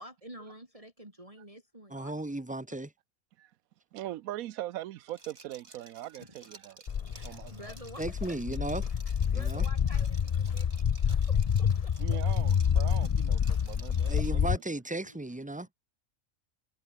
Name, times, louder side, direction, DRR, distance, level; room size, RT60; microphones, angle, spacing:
voice 1, 0.0-2.2 6.2-6.3 7.1-8.4 9.3-10.7 11.0-11.9 15.0-15.2, equal, 25° right, 4.6 m, -49 dB
voice 2, 1.9-2.9 8.0-8.9 9.3-9.6 14.1-15.7, right 2 dB, 5° right, 1.0 m, -35 dB
voice 3, 3.9-6.8 7.2-7.7 12.0-14.5, right 14 dB, 90° right, 1.1 m, -41 dB
Liquid, 5.1-14.4, right 3 dB, 50° right, 3.3 m, -54 dB
Walk footsteps, 6.9-14.6, left 7 dB, 75° left, 0.3 m, -28 dB
omnidirectional pair, 1.4 m